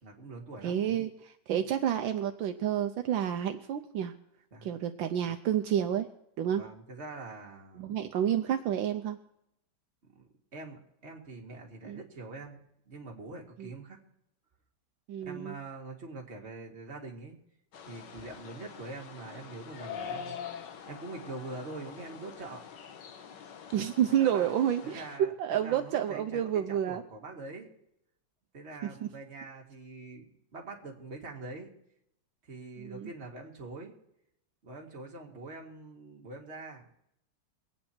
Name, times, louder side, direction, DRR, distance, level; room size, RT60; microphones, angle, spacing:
voice 1, 0.0-1.0 4.5-4.7 6.5-8.1 10.1-12.6 12.9-14.0 15.2-17.4 17.9-20.4 20.9-22.6 24.1-24.5 24.8-27.7 28.5-31.7 32.4-33.9 34.6-36.9, right 3 dB, 35° right, 0 dB, 2.1 m, -44 dB
voice 2, 0.6-1.1 1.5-4.1 4.6-6.1 6.4-6.6 7.8-9.2 11.8-12.0 13.6-13.7 15.1-15.5 23.7-25.1 25.4-27.0 29.0-29.1 32.8-33.1, right 10 dB, 75° right, 7 dB, 1.4 m, -29 dB
sound 1, 17.7-25.2, left 7 dB, 65° left, 1.6 m, -45 dB
23.5 x 8.9 x 4.4 m, 0.77 s
omnidirectional pair, 2.2 m